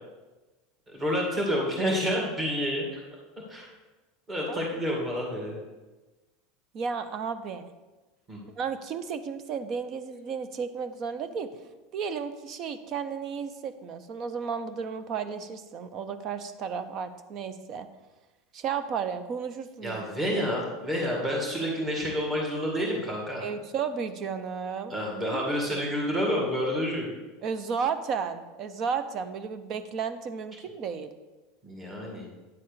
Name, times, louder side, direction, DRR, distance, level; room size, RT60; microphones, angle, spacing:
voice 1, 0.9-3.0 3.5-3.7 4.3-5.6 8.3-8.4 19.8-23.4 24.9-27.1 31.6-32.2, equal, 20° right, -2 dB, 2.1 m, -29 dB
voice 2, 6.7-7.7 8.6-11.5 11.9-17.9 18.5-20.0 20.3-20.4 23.4-24.9 25.3-25.4 25.7-25.8 27.4-31.1, right 6 dB, 40° right, 11 dB, 0.7 m, -33 dB
9.6 x 4.2 x 6.7 m, 1.2 s
supercardioid pair, 145°, 0 cm